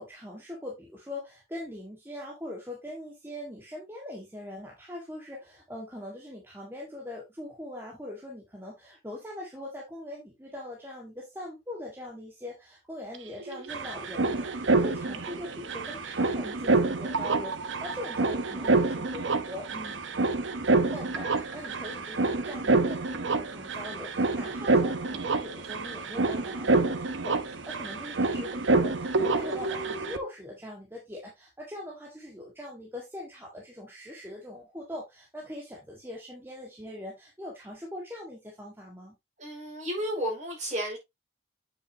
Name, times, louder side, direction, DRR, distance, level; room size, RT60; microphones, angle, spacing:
voice 1, 0.0-20.0 20.6-39.2, left 1 dB, 10° right, 1.8 m, -42 dB
sound 1, 13.1-13.2 13.4-30.2, right 3 dB, 90° right, 1.0 m, -27 dB
voice 2, 39.4-41.0, equal, 40° right, 5.3 m, -32 dB
8.4 x 6.6 x 2.8 m
head